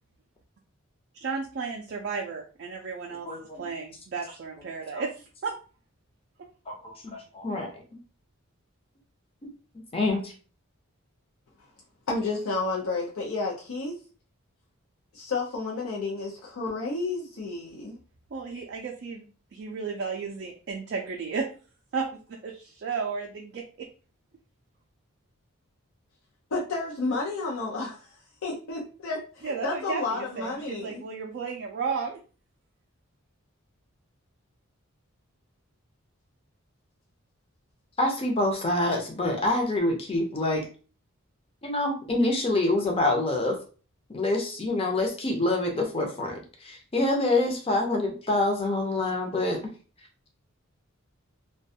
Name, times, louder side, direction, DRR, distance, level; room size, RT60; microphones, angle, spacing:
voice 1, 1.2-5.5 18.3-21.5 21.9-23.9 29.4-32.2, right 5 dB, 50° right, 1 dB, 0.3 m, -34 dB
voice 2, 3.3-3.6 4.9-5.0 6.7-7.7 9.9-10.3 38.0-40.6 41.6-43.6 44.1-49.6, left 2 dB, 25° left, 1 dB, 0.6 m, -26 dB
voice 3, 12.1-13.9 15.1-18.0 26.5-31.0, left 3 dB, 70° left, -3 dB, 0.5 m, -31 dB
2.4 x 2.2 x 2.6 m, 0.38 s
head